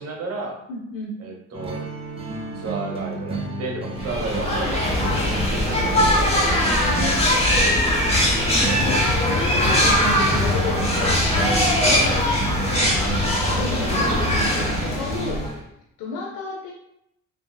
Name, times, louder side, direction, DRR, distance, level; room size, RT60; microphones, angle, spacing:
voice 1, 0.0-0.6 1.2-1.8 2.5-6.6 11.8-12.1, right 3 dB, 55° right, 1 dB, 0.7 m, -32 dB
voice 2, 0.7-1.2 4.6-4.8 6.8-7.3 8.8-10.9 11.2-12.0 12.4-13.2 13.5-15.4 16.0-16.7, left 2 dB, 90° left, -1 dB, 0.5 m, -32 dB
sound 1, 1.5-15.4, right 2 dB, 20° right, 0.5 m, -31 dB
sound 2, 4.0-15.6, left 1 dB, 20° left, 0.8 m, -21 dB
2.9 x 2.6 x 2.2 m, 0.78 s
cardioid pair, 90°, 30 cm